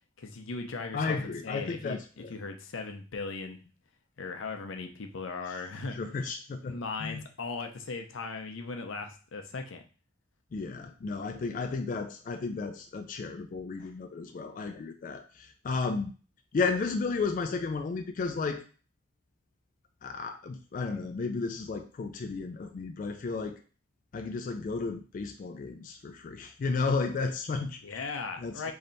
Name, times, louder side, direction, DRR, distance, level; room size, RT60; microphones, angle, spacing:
voice 1, 0.2-1.2 1.4-2.0 2.3-3.6 4.2-6.0 6.6-9.8 27.8-28.7, left 4 dB, 90° left, 5 dB, 0.6 m, -38 dB
voice 2, 0.9-2.3 5.9-7.2 10.5-16.1 16.5-18.6 20.0-23.6 24.1-28.1 28.4-28.7, left 4 dB, 45° left, 5 dB, 0.3 m, -33 dB
3.2 x 2.8 x 3.9 m, 0.37 s
head